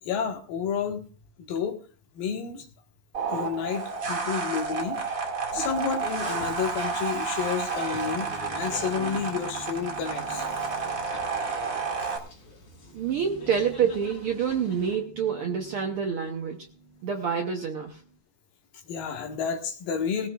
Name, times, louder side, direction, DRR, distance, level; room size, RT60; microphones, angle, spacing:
voice 1, 0.0-1.0 1.5-1.7 2.1-2.7 3.3-5.0 5.5-8.3 8.5-10.7 12.0-12.1 18.8-20.3, left 7 dB, 80° left, 3 dB, 3.3 m, -30 dB
sound 1, 3.1-12.2, right 5 dB, 35° right, 1.6 m, -31 dB
sound 2, 5.5-15.0, left 1 dB, 55° left, 5.7 m, -44 dB
sound 3, 6.5-18.2, right 2 dB, 10° right, 7.2 m, -51 dB
voice 2, 12.9-16.7 17.0-18.0, right 7 dB, 75° right, 2 dB, 1.2 m, -27 dB
19.5 x 14.5 x 2.4 m, 0.36 s
omnidirectional pair, 4.0 m